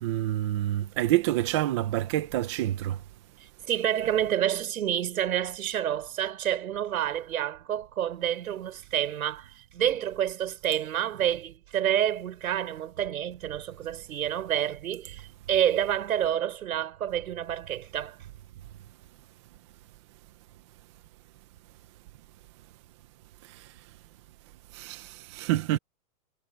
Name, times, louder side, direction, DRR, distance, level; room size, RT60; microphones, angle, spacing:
voice 1, 0.0-3.0 24.7-25.8, right 14 dB, 20° right, 0.6 m, -27 dB
voice 2, 3.7-18.2, right 10 dB, 75° right, 6.4 m, -28 dB
supercardioid pair, 170°, 43 cm